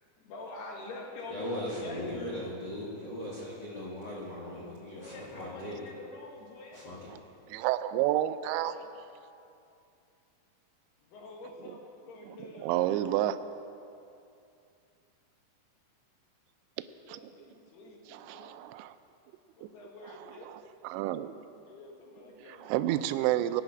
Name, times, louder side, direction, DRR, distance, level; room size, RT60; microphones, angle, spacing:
voice 1, 0.2-2.2 4.9-6.9 8.6-8.9 11.0-13.2 16.9-18.6 19.5-20.5 21.6-23.0, left 2 dB, 65° left, -1 dB, 3.5 m, -46 dB
voice 2, 1.3-5.8 6.7-7.0, left 1 dB, 40° left, -6 dB, 1.7 m, -39 dB
voice 3, 7.5-8.7 11.7-11.8 12.4-13.4 17.1-17.2 18.1-18.9 20.1-21.4 22.4-23.6, right 13 dB, 85° right, 11 dB, 2.8 m, -30 dB
18.0 x 9.9 x 6.0 m, 2.6 s
omnidirectional pair, 5.2 m